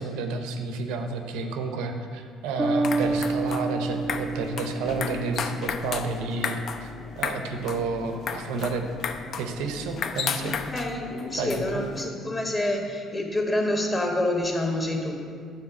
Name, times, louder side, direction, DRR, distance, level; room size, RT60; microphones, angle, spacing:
voice 1, 0.0-8.9 9.4-10.6 11.3-11.9, right 4 dB, 90° right, 6 dB, 0.7 m, -30 dB
sound 1, 2.6-12.1, left 6 dB, 55° left, 0.4 m, -34 dB
Bass guitar, 2.6-6.1, right 3 dB, 5° right, 0.4 m, -29 dB
voice 2, 10.7-15.2, left 1 dB, 25° left, 2 dB, 1.2 m, -27 dB
8.6 x 3.8 x 5.9 m, 2.2 s
cardioid pair, 90°, 0 cm